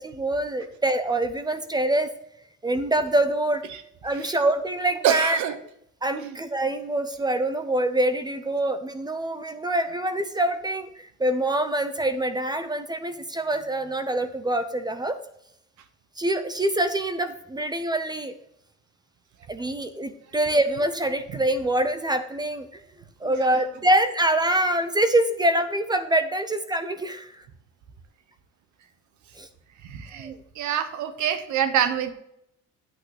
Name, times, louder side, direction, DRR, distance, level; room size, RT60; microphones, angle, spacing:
voice 1, 0.0-2.1 2.6-3.6 4.0-5.4 6.0-15.2 16.2-18.3 19.5-22.7 23.2-27.4 29.4-29.5 30.1-30.4, right 1 dB, 15° right, 10 dB, 0.4 m, -25 dB
voice 2, 5.0-5.6 6.2-6.4 23.2-23.6 29.8-32.1, right 9 dB, 65° right, 10 dB, 1.0 m, -26 dB
9.0 x 8.6 x 3.3 m, 0.76 s
cardioid pair, 170°, 31 cm